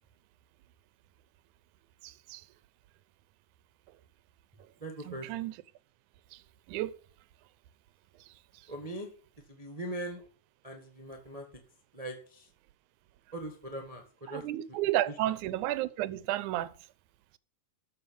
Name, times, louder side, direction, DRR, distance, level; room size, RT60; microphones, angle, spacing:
voice 1, 2.0-2.5 5.1-5.6 6.3-6.4 6.7-7.0 14.3-16.7, right 14 dB, 80° right, 1.8 m, -32 dB
voice 2, 4.8-5.3 8.7-9.1 9.5-10.2 10.6-11.4 11.9-12.5 13.3-14.4, right 1 dB, 45° right, 0.4 m, -40 dB
13.5 x 5.8 x 7.0 m
omnidirectional pair, 4.1 m